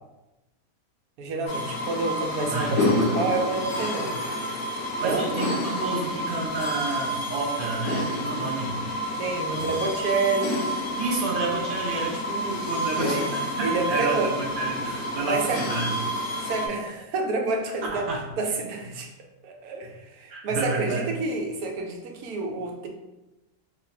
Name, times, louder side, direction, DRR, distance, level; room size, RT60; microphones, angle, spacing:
voice 1, 1.2-4.1 5.0-5.3 9.2-10.6 13.0-13.3 13.6-14.3 15.2-15.6 16.5-18.0 18.4-19.1 19.4-22.9, right 3 dB, 85° right, 2 dB, 1.1 m, -28 dB
sound 1, 1.5-16.7, equal, 75° left, 1.3 m, -29 dB
voice 2, 2.5-3.1 5.0-8.8 9.5-9.7 11.0-16.0 17.9-18.2 20.3-21.1, right 3 dB, 65° right, -3 dB, 0.5 m, -30 dB
3.2 x 2.1 x 4.0 m, 1.0 s
omnidirectional pair, 1.6 m